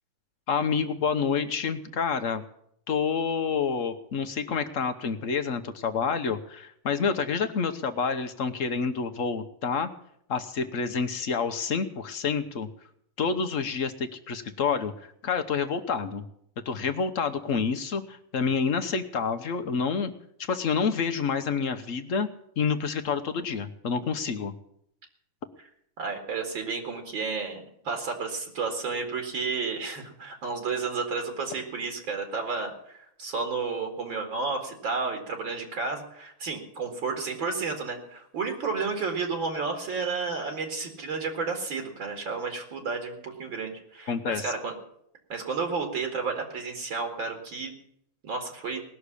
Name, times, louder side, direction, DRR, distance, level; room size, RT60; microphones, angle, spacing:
voice 1, 0.5-2.4 2.9-9.9 10.3-12.7 13.2-14.9 15.2-16.2 16.6-20.1 20.4-22.3 22.6-24.5 44.1-44.5, left 5 dB, 50° left, 8 dB, 1.0 m, -28 dB
voice 2, 26.0-44.7 45.3-47.7 48.2-48.8, right 4 dB, 60° right, 4 dB, 2.9 m, -32 dB
19.0 x 6.6 x 9.9 m, 0.72 s
omnidirectional pair, 2.4 m